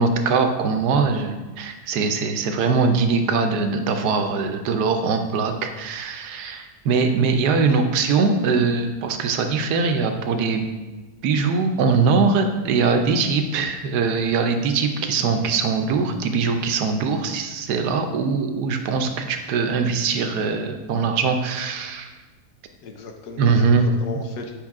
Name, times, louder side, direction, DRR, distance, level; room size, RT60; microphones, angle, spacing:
voice 1, 0.0-10.7 11.2-22.1 23.4-23.9, right 4 dB, 85° right, 5 dB, 1.3 m, -22 dB
voice 2, 7.6-8.0 22.8-24.5, left 4 dB, 90° left, 4 dB, 1.5 m, -37 dB
8.8 x 5.2 x 3.6 m, 1.2 s
omnidirectional pair, 1.7 m